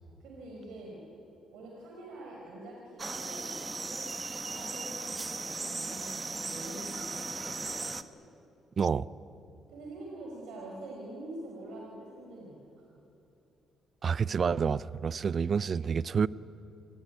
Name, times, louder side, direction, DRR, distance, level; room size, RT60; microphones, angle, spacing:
voice 1, 0.2-1.0 1.5-3.5 3.9-4.0 4.3-7.7 9.7-12.8, right 1 dB, 85° right, 5.0 m, -45 dB
sound 1, 3.0-8.0, right 3 dB, 25° right, 1.3 m, -37 dB
voice 2, 8.8-9.1 14.0-16.3, right 6 dB, 45° right, 0.6 m, -28 dB
28.5 x 20.0 x 9.5 m
cardioid pair, 90°, 0 cm